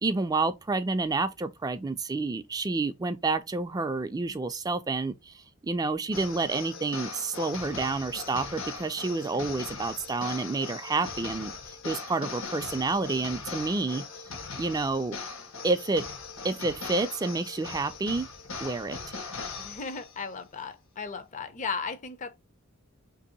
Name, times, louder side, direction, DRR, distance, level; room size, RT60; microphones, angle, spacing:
voice 1, 0.0-11.5 11.8-14.0 14.6-15.2 15.6-16.1 16.4-18.3 18.6-19.0, right 3 dB, 20° right, 0.3 m, -29 dB
sound 1, 6.1-20.2, left 4 dB, 65° left, 0.8 m, -40 dB
voice 2, 19.6-22.4, left 5 dB, 35° left, 0.5 m, -36 dB
2.9 x 2.7 x 3.9 m
head